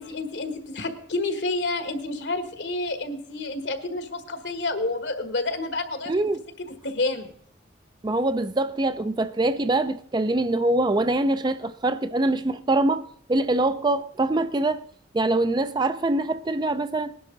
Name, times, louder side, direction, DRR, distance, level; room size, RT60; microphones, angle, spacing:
voice 1, 0.0-6.1 6.6-7.3, left 2 dB, 75° left, 1.5 m, -29 dB
voice 2, 6.1-6.4 8.0-14.8 15.1-17.1, right 2 dB, 25° right, 0.4 m, -24 dB
19.0 x 11.0 x 3.9 m
head